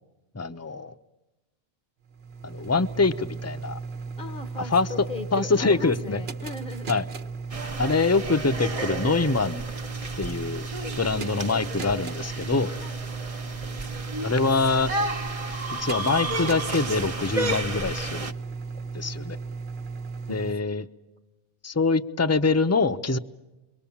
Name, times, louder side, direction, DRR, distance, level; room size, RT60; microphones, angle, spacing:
voice 1, 0.3-0.9 2.4-3.8 4.7-4.9 5.3-6.2 6.9-7.0 7.8-9.6 10.2-10.7 11.0-12.7 14.2-14.9 15.8-18.3 18.9-19.4 20.3-20.9 21.6-23.2, left 3 dB, 15° left, 9 dB, 0.8 m, -24 dB
sound 1, 2.0-20.5, right 4 dB, 70° right, 1.4 m, -36 dB
voice 2, 4.2-7.0 10.8-11.0 12.8-13.0 20.3-20.6, left 4 dB, 55° left, 8 dB, 1.2 m, -38 dB
sound 2, 7.5-18.3, right 2 dB, 35° right, 1.0 m, -33 dB
29.5 x 23.0 x 7.2 m, 1.1 s
omnidirectional pair, 1.1 m